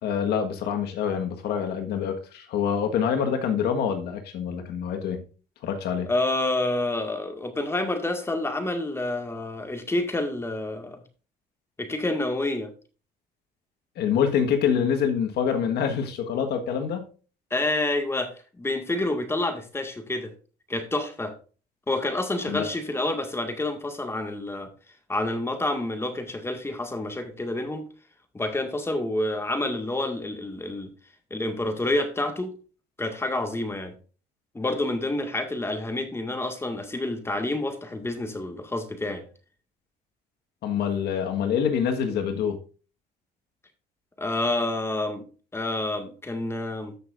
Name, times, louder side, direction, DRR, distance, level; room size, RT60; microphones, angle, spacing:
voice 1, 0.0-5.3 5.6-6.1 14.0-17.1 22.5-22.7 40.6-42.6, left 7 dB, 75° left, 1.6 m, -26 dB
voice 2, 6.1-11.0 11.8-12.7 17.5-18.3 18.6-20.3 20.7-21.4 21.9-24.7 25.1-27.8 28.3-30.9 31.3-32.5 33.0-33.9 34.5-39.2 44.2-45.3 45.5-46.9, left 2 dB, 15° left, 1.9 m, -28 dB
14.0 x 6.4 x 2.6 m
cardioid pair, 110°, 17 cm